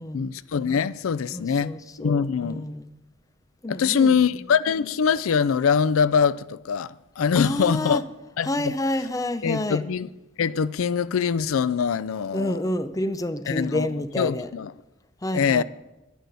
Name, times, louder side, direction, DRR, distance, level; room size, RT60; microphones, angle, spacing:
voice 1, 0.1-2.6 3.7-8.0 8.4-8.7 9.4-10.1 10.4-12.6 13.5-13.9 14.2-14.7 15.3-15.6, left 6 dB, 85° left, 0.4 m, -23 dB
voice 2, 1.3-2.9 3.6-4.6 7.3-8.0 8.4-9.8 12.3-14.5 15.2-15.6, left 1 dB, 15° left, 0.6 m, -29 dB
10.5 x 10.5 x 6.8 m
head